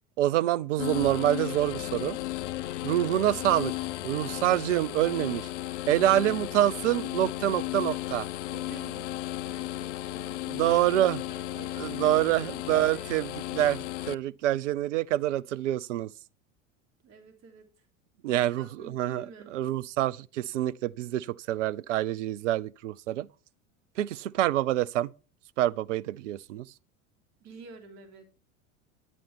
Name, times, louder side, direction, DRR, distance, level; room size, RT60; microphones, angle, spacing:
voice 1, 0.2-2.2 2.8-3.7 4.0-5.5 5.9-8.3 10.5-11.2 11.8-16.1 18.2-19.3 19.5-23.3 24.0-25.1 25.6-26.7, right 13 dB, 65° right, 0.7 m, -26 dB
sound 1, 0.8-14.1, left 15 dB, 60° left, 0.7 m, -35 dB
voice 2, 3.3-3.7 8.5-12.5 12.9-13.2 17.0-17.9 18.2-19.5 27.4-28.3, right 4 dB, 40° right, 3.5 m, -50 dB
13.5 x 10.5 x 4.4 m
figure-of-eight pair, 75°, 40 cm